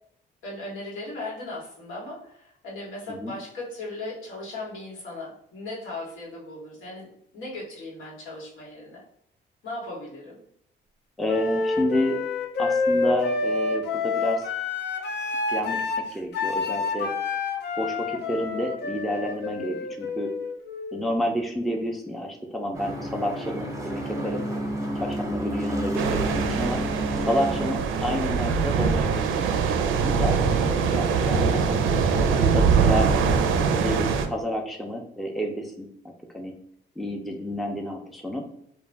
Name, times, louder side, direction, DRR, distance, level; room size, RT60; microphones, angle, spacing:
voice 1, 0.4-7.1 7.3-9.0 9.6-10.4 30.0-30.6, left 2 dB, 85° left, -5 dB, 1.1 m, -37 dB
voice 2, 11.2-12.2 12.6-14.5 15.5-15.8 16.1-17.1 17.8-20.3 20.9-24.4 25.0-26.8 27.1-29.5 29.8-30.3 30.9-33.1 33.8-35.9 36.3-36.5 37.0-38.4, equal, ahead, 2 dB, 0.4 m, -29 dB
Wind instrument woodwind instrument, 11.3-21.1, left 3 dB, 60° left, 0.5 m, -28 dB
sound 1, 22.7-27.8, right 1 dB, 15° right, 0.7 m, -30 dB
sound 2, 25.9-34.3, right 5 dB, 85° right, 0.4 m, -23 dB
2.4 x 2.2 x 3.2 m, 0.72 s
cardioid pair, 90°, 20 cm